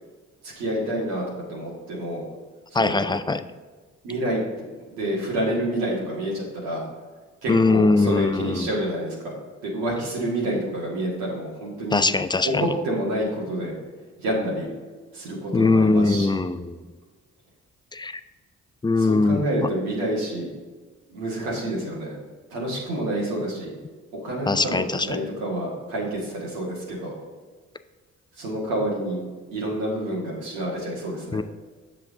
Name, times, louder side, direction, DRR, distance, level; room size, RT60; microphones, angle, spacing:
voice 1, 0.4-1.2 1.5-2.2 2.8-3.1 4.0-4.4 4.9-6.9 7.4-12.0 12.4-13.7 14.2-14.7 15.1-16.3 19.0-20.5 21.1-22.2 22.5-23.7 24.1-27.1 28.4-29.2 29.5-31.4, right 1 dB, 85° right, -4 dB, 1.8 m, -28 dB
voice 2, 2.7-3.4 7.5-8.7 11.9-12.6 15.5-16.8 17.9-18.2 18.8-19.7 24.5-25.3 31.3-31.4, left 3 dB, 10° left, 12 dB, 0.4 m, -21 dB
7.7 x 6.0 x 3.7 m, 1.4 s
hypercardioid pair, 40°, 39 cm